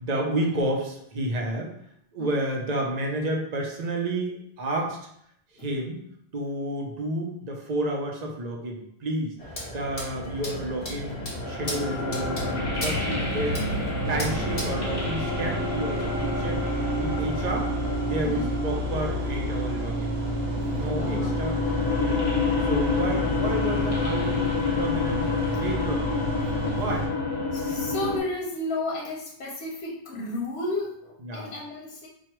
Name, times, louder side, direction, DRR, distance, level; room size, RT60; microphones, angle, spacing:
voice 1, 0.0-1.7 2.1-5.0 5.5-6.0 6.3-9.4 9.7-13.8 14.1-16.6 17.0-17.7 18.0-20.1 20.7-22.2 22.7-24.5 24.8-26.2 26.8-27.1 31.2-31.5, right 1 dB, 45° right, 1 dB, 0.7 m, -31 dB
sound 1, 9.4-15.0, left 1 dB, 40° left, 0.9 m, -37 dB
sound 2, 9.7-28.2, left 4 dB, 65° left, 1.2 m, -29 dB
sound 3, 14.1-27.1, right 1 dB, 75° right, 1.0 m, -30 dB
voice 2, 21.0-21.4 27.5-32.1, left 2 dB, 85° left, -3 dB, 0.9 m, -32 dB
4.7 x 2.3 x 3.0 m, 0.72 s
omnidirectional pair, 1.0 m